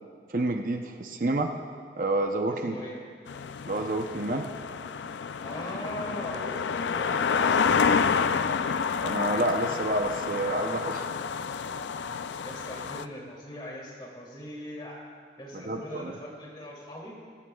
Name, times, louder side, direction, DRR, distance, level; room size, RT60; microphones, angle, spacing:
voice 1, 0.3-1.5 2.0-2.8 3.7-4.5 9.0-11.0 15.5-16.1, right 2 dB, 50° right, 4 dB, 0.7 m, -29 dB
voice 2, 2.5-3.0 5.4-8.3 12.4-15.0 15.4-17.2, equal, 25° left, -3 dB, 2.7 m, -40 dB
sound 1, 3.3-13.0, left 6 dB, 85° left, 0.4 m, -29 dB
23.0 x 14.5 x 2.4 m, 2.1 s
head